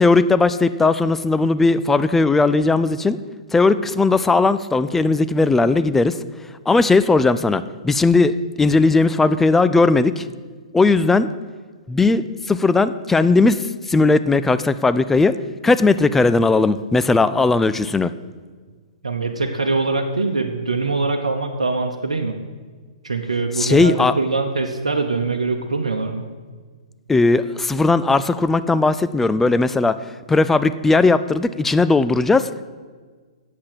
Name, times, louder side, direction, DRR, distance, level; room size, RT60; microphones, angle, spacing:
voice 1, 0.0-3.2 3.5-10.3 10.7-11.3 11.9-15.4 15.6-18.1 23.6-24.2 27.1-32.6, left 3 dB, 5° left, 13 dB, 0.3 m, -17 dB
voice 2, 19.0-22.4 23.0-26.2, right 3 dB, 85° right, 3 dB, 0.9 m, -23 dB
8.6 x 7.4 x 7.8 m, 1.5 s
figure-of-eight pair, 120°, 3 cm